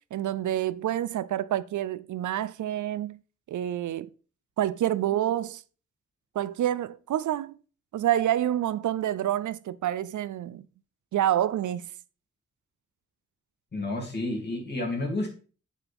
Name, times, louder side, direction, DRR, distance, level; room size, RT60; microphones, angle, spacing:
voice 1, 0.1-3.2 3.5-4.1 4.6-5.6 6.3-7.5 7.9-10.7 11.1-11.8, right 12 dB, 75° right, 0.5 m, -28 dB
voice 2, 13.7-15.3, left 2 dB, 35° left, 2.7 m, -30 dB
8.5 x 6.9 x 3.5 m
wide cardioid pair, 155°, 30 cm